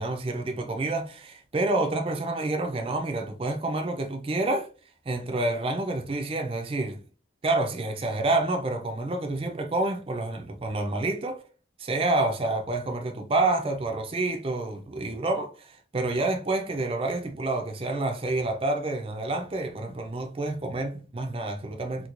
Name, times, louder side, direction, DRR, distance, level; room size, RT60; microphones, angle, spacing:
voice 1, 0.0-4.7 5.1-7.0 7.4-11.4 11.8-22.1, right 2 dB, 30° right, 0.4 m, -28 dB
4.4 x 2.3 x 2.5 m
head